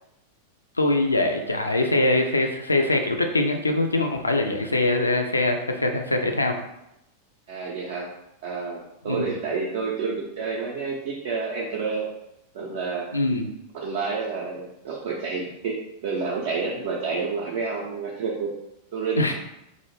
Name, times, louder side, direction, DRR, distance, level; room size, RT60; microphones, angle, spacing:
voice 1, 0.8-6.6 9.0-9.3 13.1-13.5 19.2-19.3, left 2 dB, 80° left, 4 dB, 0.3 m, -23 dB
voice 2, 7.5-8.1 8.4-12.1 12.5-13.1 13.7-18.5 18.9-19.3, right 4 dB, 55° right, -3 dB, 0.4 m, -29 dB
2.4 x 2.0 x 2.9 m, 0.87 s
figure-of-eight pair, 90°, 0 cm